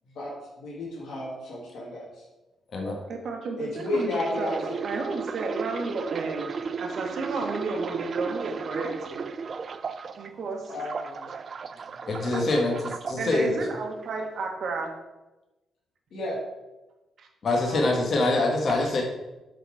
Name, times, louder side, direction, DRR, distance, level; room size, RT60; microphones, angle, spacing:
voice 1, 0.6-2.0 3.6-4.8 10.7-11.3 16.1-16.4, left 2 dB, 75° left, -6 dB, 1.8 m, -32 dB
voice 2, 3.1-6.5 6.8-9.3 9.6-9.8 10.1-10.8 11.9-12.0 13.2-14.9 17.2-17.3 17.7-17.8, right 3 dB, 60° right, 2 dB, 1.3 m, -32 dB
sound 1, 3.8-10.3 10.7-13.2 13.8-14.1, right 5 dB, 45° right, 0.4 m, -35 dB
voice 3, 12.1-13.5 17.4-19.0, left 2 dB, 50° left, 0 dB, 1.2 m, -24 dB
7.9 x 4.1 x 4.8 m, 1.0 s
cardioid pair, 115°, 0 cm